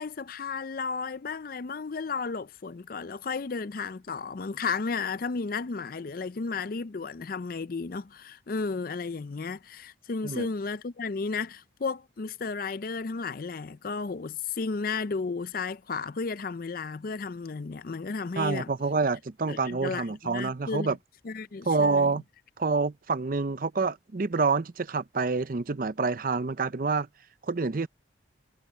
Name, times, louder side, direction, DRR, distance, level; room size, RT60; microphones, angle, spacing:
voice 1, 0.0-18.7 19.5-21.0 21.2-22.1, left 4 dB, 50° left, 0.5 m, -33 dB
voice 2, 18.4-21.0 21.7-22.2 22.6-27.1 27.4-27.9, right 4 dB, 45° right, 0.6 m, -27 dB
head